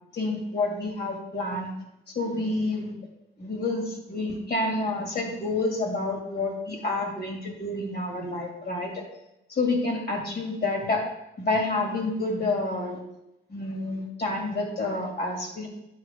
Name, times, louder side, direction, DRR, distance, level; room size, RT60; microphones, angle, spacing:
voice 1, 0.1-1.7 2.1-2.9 3.4-9.0 9.5-11.0 11.4-13.0 13.5-15.7, left 2 dB, 55° left, 1 dB, 2.3 m, -28 dB
9.3 x 5.9 x 3.5 m, 0.88 s
cardioid pair, 90°, 20 cm